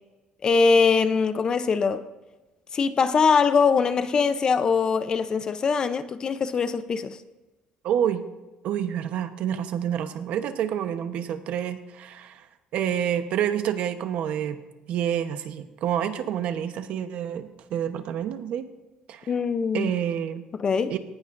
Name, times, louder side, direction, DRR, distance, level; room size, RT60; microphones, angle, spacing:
voice 1, 0.4-2.0 2.7-7.2 19.3-19.9 20.5-20.9, left 5 dB, 30° left, 11 dB, 0.6 m, -22 dB
voice 2, 7.8-8.2 8.6-12.5 12.7-14.6 14.9-18.7 19.1-19.3 19.7-20.4 20.9-21.0, right 9 dB, 60° right, 9 dB, 1.0 m, -28 dB
19.0 x 15.5 x 2.6 m, 1.2 s
cardioid pair, 150°, 3 cm